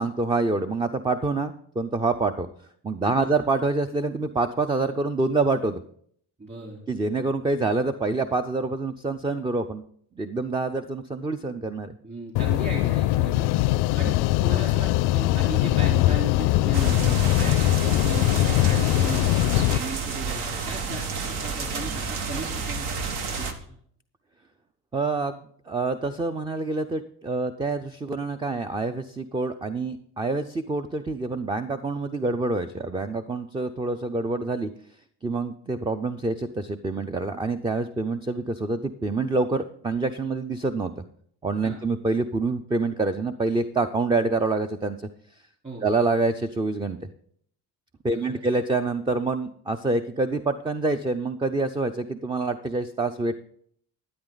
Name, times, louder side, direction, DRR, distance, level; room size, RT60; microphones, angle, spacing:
voice 1, 0.0-2.5 2.8-5.8 6.9-9.8 10.2-11.9 24.9-34.7 35.2-40.9 41.4-45.1 45.8-47.0 48.0-53.4, right 3 dB, 10° right, 10 dB, 0.4 m, -26 dB
voice 2, 6.4-6.8 12.0-13.6 14.0-19.2 19.5-23.0 23.3-23.5 41.6-41.8 45.6-45.9 48.0-48.3, right 2 dB, 30° right, -1 dB, 3.6 m, -36 dB
sound 1, 12.4-19.8, left 17 dB, 75° left, 0.5 m, -21 dB
sound 2, 16.7-23.5, right 5 dB, 70° right, 1.5 m, -30 dB
12.0 x 9.8 x 3.9 m, 0.62 s
cardioid pair, 105°, 40 cm